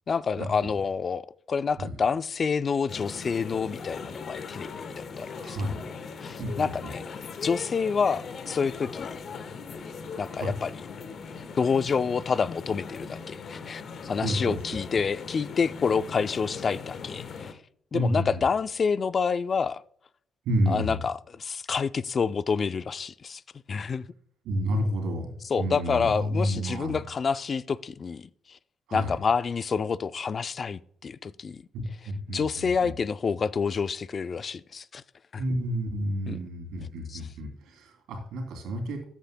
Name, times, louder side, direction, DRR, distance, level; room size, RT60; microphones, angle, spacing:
voice 1, 0.1-5.6 6.2-7.0 7.4-9.2 10.2-10.7 11.6-17.6 17.9-19.8 20.7-23.4 23.7-24.0 25.5-28.6 28.9-31.6 32.3-35.0 35.3-35.4 36.3-36.4 37.1-37.2, left 5 dB, 45° left, 0.4 m, -28 dB
sound 1, 2.9-17.5, left 5 dB, 60° left, 1.1 m, -40 dB
voice 2, 5.3-5.8 6.4-6.9 10.4-10.5 14.2-14.6 17.9-18.3 20.4-21.0 24.4-25.3 25.6-27.0 28.9-29.2 31.7-32.9 35.4-39.0, equal, 85° right, 2.9 m, -30 dB
14.0 x 8.3 x 2.2 m
cardioid pair, 90°, 0 cm